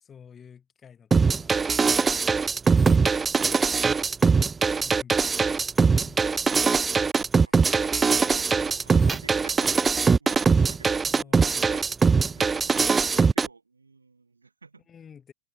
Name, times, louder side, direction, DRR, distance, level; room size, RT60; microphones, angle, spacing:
voice 1, 0.0-2.4 4.8-6.8 7.3-7.7 11.1-11.8 14.9-15.3, left 7 dB, 20° left, 3.6 m, -51 dB
sound 1, 1.1-13.5, right 5 dB, 15° right, 0.3 m, -21 dB
voice 2, 7.4-11.8 12.3-14.9, right 4 dB, 80° right, 7.2 m, -51 dB
figure-of-eight pair, 90°, 0 cm